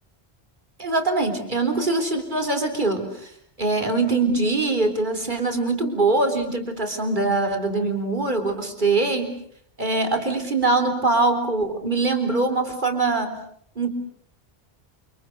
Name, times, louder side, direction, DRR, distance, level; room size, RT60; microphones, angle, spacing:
voice 1, 0.8-3.3 3.6-9.3 9.8-13.4 13.8-13.9, right 3 dB, 50° right, 6 dB, 3.9 m, -23 dB
28.5 x 27.5 x 6.7 m, 0.65 s
omnidirectional pair, 1.1 m